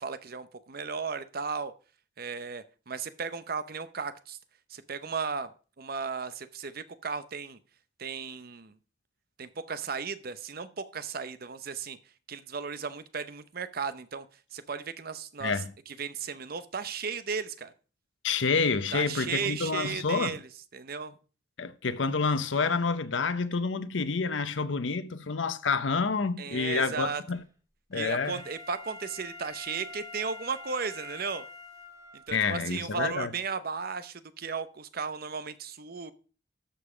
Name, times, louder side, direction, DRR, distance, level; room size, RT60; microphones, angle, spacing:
voice 1, 0.0-1.7 2.2-4.4 4.7-5.5 5.8-7.6 8.0-8.8 9.4-12.0 12.3-14.3 14.5-15.6 15.9-17.7 18.9-21.2 26.4-27.2 27.9-31.4 32.1-36.1, right 5 dB, 55° right, 0.8 m, -35 dB
voice 2, 18.2-20.3 21.6-27.4 27.9-28.4 32.3-33.3, left 4 dB, 80° left, 0.8 m, -28 dB
Wind instrument woodwind instrument, 28.0-32.3 32.8-32.9, left 2 dB, 20° right, 2.2 m, -45 dB
13.0 x 5.5 x 5.0 m
head